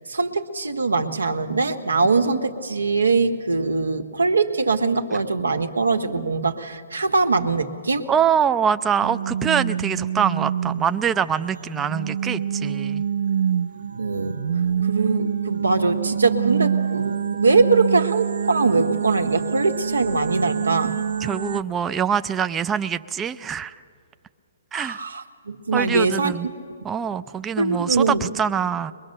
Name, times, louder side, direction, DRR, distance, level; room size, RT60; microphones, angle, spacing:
voice 1, 0.1-8.1 14.0-14.4 14.8-21.0 24.7-26.3 27.6-28.3, right 3 dB, 90° right, 6 dB, 1.4 m, -22 dB
voice 2, 8.1-13.0 21.2-23.7 24.7-25.0 25.7-26.5 26.8-28.9, right 8 dB, 15° right, 10 dB, 0.5 m, -24 dB
sound 1, 9.0-21.6, right 8 dB, 70° right, 0.5 m, -26 dB
22.5 x 22.0 x 6.6 m, 2.2 s
hypercardioid pair, 135°, 0 cm